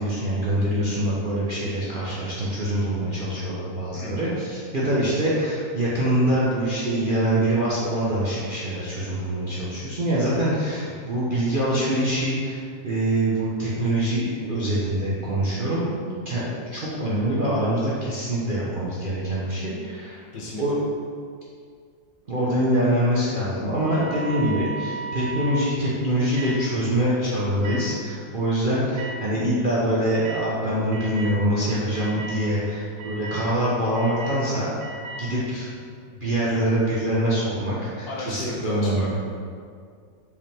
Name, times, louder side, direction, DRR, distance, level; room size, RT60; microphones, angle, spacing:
voice 1, 0.0-15.9 16.2-20.2 20.6-20.7 22.3-34.7 35.2-35.7 36.2-39.1, right 1 dB, 45° right, -8 dB, 0.7 m, -24 dB
voice 2, 3.9-4.3 20.3-20.6 38.1-39.2, left 2 dB, 75° left, -4 dB, 1.8 m, -34 dB
sound 1, 23.7-25.6 26.3-26.6 27.6-27.8 28.9-29.1 30.2-30.4 30.9-31.4 31.9-32.4 33.0-33.4 33.9-34.4 34.8-35.2, right 4 dB, 85° right, 1.4 m, -35 dB
5.3 x 5.1 x 3.5 m, 2.2 s
omnidirectional pair, 1.9 m